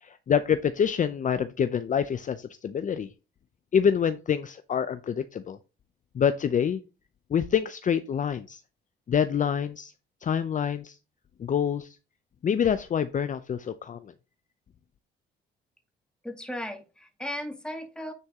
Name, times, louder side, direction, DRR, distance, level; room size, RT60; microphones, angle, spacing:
voice 1, 0.0-3.1 3.7-5.6 6.1-6.8 7.3-8.6 9.1-9.9 10.2-11.0 11.4-12.0 12.4-14.1, left 8 dB, 40° left, 12 dB, 0.5 m, -26 dB
voice 2, 16.2-18.1, left 1 dB, 5° left, 5 dB, 2.0 m, -36 dB
9.6 x 4.5 x 3.6 m, 0.31 s
cardioid pair, 90°, 20 cm